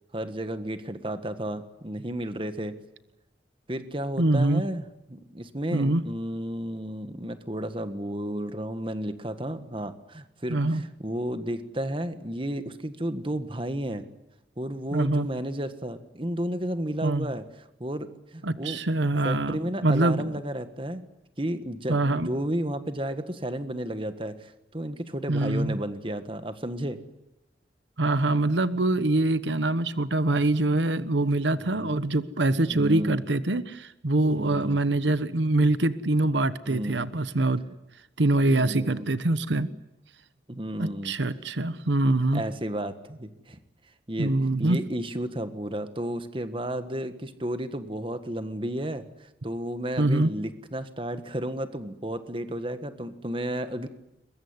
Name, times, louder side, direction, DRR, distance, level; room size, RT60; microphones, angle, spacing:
voice 1, 0.1-2.8 3.7-4.8 5.1-14.0 14.6-17.4 17.8-18.8 19.2-21.0 21.4-27.0 31.6-31.9 32.7-33.2 34.3-34.8 36.7-37.0 38.5-39.1 40.5-41.1 42.3-43.6 44.1-44.3 44.6-53.9, right 1 dB, 30° right, 10 dB, 1.6 m, -32 dB
voice 2, 4.2-4.6 5.7-6.0 10.5-10.8 14.9-15.3 17.0-17.3 18.4-20.4 21.9-22.3 25.3-25.8 28.0-37.6 38.2-39.7 40.8-42.4 44.2-44.8 50.0-50.3, right 2 dB, 90° right, 13 dB, 1.1 m, -24 dB
22.5 x 22.0 x 9.7 m, 0.93 s
head